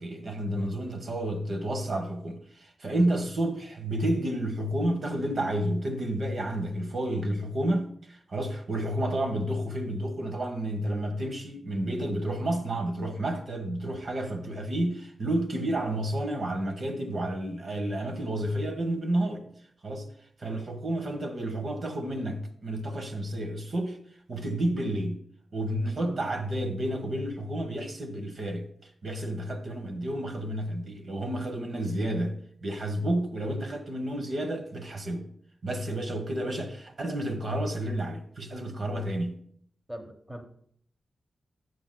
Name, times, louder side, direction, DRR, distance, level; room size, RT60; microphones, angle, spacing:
voice 1, 0.0-19.5 19.8-20.1 20.4-24.0 24.3-25.2 25.5-35.3 35.6-39.4, right 1 dB, 50° right, 1.3 m, -30 dB
voice 2, 39.9-40.4, right 1 dB, 10° right, 1.1 m, -42 dB
21.5 x 7.8 x 2.3 m
wide cardioid pair, 125°, 0 cm